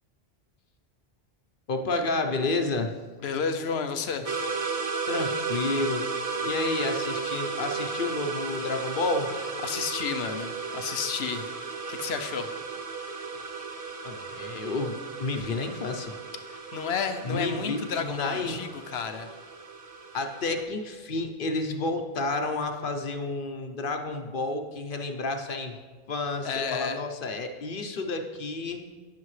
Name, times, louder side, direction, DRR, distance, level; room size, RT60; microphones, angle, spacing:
voice 1, 1.7-2.9 5.1-6.1 6.4-9.3 14.0-16.1 17.2-18.6 20.1-25.8 26.1-28.8, left 2 dB, 60° left, 6 dB, 1.0 m, -30 dB
voice 2, 3.2-4.4 9.6-12.5 16.5-19.3 26.4-27.0, left 6 dB, 85° left, 8 dB, 1.0 m, -32 dB
sound 1, 4.2-20.6, right 4 dB, 40° right, 0.7 m, -34 dB
18.5 x 6.8 x 3.2 m, 1.4 s
omnidirectional pair, 1.0 m